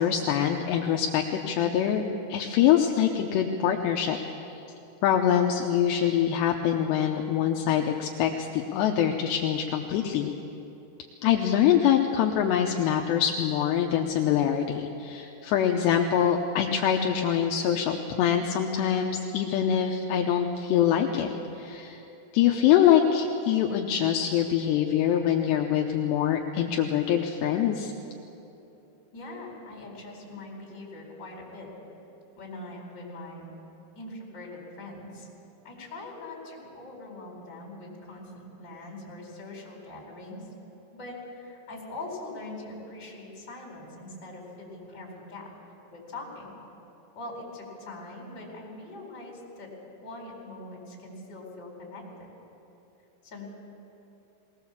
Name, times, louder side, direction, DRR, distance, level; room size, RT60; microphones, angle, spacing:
voice 1, 0.0-2.0 2.3-4.2 5.0-10.3 11.2-22.0 22.3-27.9, left 9 dB, 80° left, 2 dB, 2.6 m, -24 dB
voice 2, 29.1-31.7 32.4-33.5 33.9-35.3 35.6-40.4 40.9-45.5 45.9-46.6 47.1-49.7 50.0-52.0 53.2-53.5, left 2 dB, 25° left, -3 dB, 4.6 m, -42 dB
20.5 x 19.5 x 7.3 m, 2.9 s
omnidirectional pair, 5.6 m